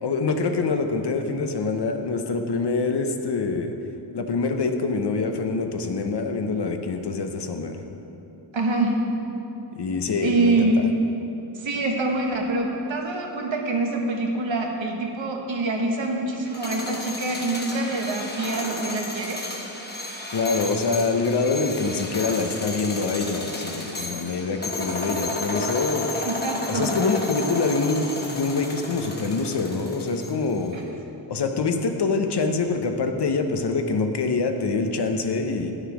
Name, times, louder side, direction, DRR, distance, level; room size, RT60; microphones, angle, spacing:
voice 1, 0.0-3.7 4.1-7.8 9.7-10.7 20.3-26.1 26.7-30.8 31.3-35.7, left 4 dB, 60° left, 5 dB, 0.8 m, -25 dB
voice 2, 8.5-9.0 10.2-10.8 11.5-19.4 26.1-27.1 30.7-30.8, right 2 dB, 85° right, 1 dB, 1.2 m, -25 dB
sound 1, 16.4-30.6, left 2 dB, 20° left, 1.1 m, -33 dB
9.6 x 6.5 x 4.9 m, 3.0 s
wide cardioid pair, 70°, 45 cm